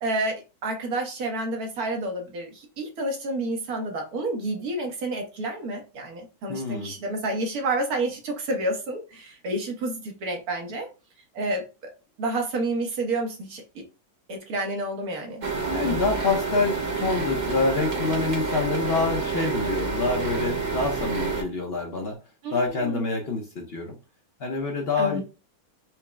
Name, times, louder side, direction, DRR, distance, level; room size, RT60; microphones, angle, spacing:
voice 1, 0.0-10.9 11.3-11.6 12.2-13.8 14.3-15.4 22.4-23.0 25.0-25.2, right 2 dB, 75° right, 2 dB, 1.5 m, -29 dB
voice 2, 6.5-7.0 15.7-22.2 22.5-24.0 24.4-25.2, left 3 dB, 50° left, 1 dB, 0.8 m, -26 dB
sound 1, 15.4-21.4, right 4 dB, 50° right, 0.5 m, -28 dB
4.5 x 2.0 x 3.3 m, 0.30 s
omnidirectional pair, 1.6 m